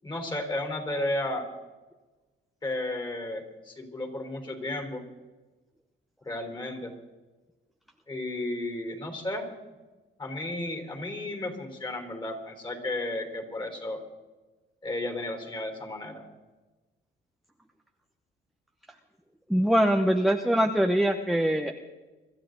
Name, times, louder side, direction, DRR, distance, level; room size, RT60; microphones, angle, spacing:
voice 1, 0.0-1.5 2.6-5.0 6.2-6.9 8.1-9.5 10.2-14.0 14.8-16.2, left 1 dB, 20° left, 5 dB, 3.9 m, -33 dB
voice 2, 19.5-21.7, equal, ahead, 4 dB, 0.9 m, -23 dB
25.0 x 13.0 x 4.0 m, 1.2 s
cardioid pair, 105°, 21 cm